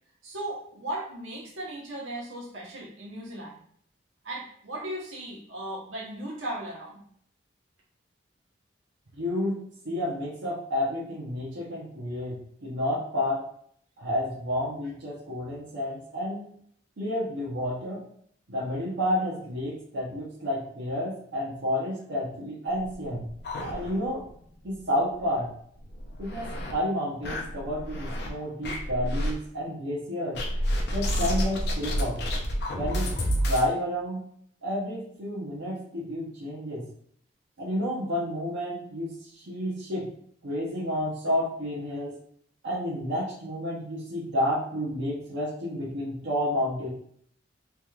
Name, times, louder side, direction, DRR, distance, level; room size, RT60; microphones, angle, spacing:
voice 1, 0.2-3.6 4.2-7.0, right 1 dB, 90° right, -3 dB, 1.1 m, -37 dB
voice 2, 9.2-13.4 14.0-16.5 17.0-18.0 18.5-23.2 23.7-24.2 24.6-25.5 26.2-30.4 30.9-32.2 32.7-33.2 33.4-34.2 34.6-36.8 37.6-40.1 40.4-42.1 42.6-46.9, left 1 dB, 70° right, -7 dB, 0.8 m, -30 dB
sound 1, 22.7-24.3 24.6-24.7 25.1-25.2 25.8-26.7 27.2-28.3 28.6-29.3 30.3-33.7, equal, 55° left, 0.5 m, -29 dB
3.3 x 3.0 x 2.4 m, 0.64 s
head